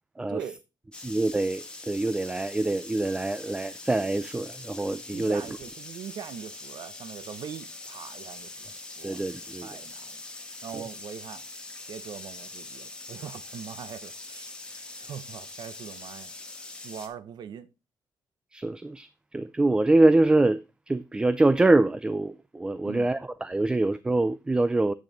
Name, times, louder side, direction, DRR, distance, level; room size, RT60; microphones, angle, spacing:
voice 1, 0.3-0.6 5.1-10.2 10.6-11.4 11.9-17.7 22.8-23.1, right 8 dB, 75° right, 0.9 m, -42 dB
sound 1, 0.9-17.1, left 2 dB, 10° left, 1.3 m, -43 dB
voice 2, 1.0-5.4 9.0-9.7 18.5-20.6 20.9-24.9, right 2 dB, 10° right, 0.4 m, -24 dB
8.6 x 6.4 x 4.1 m
wide cardioid pair, 155°, 7 cm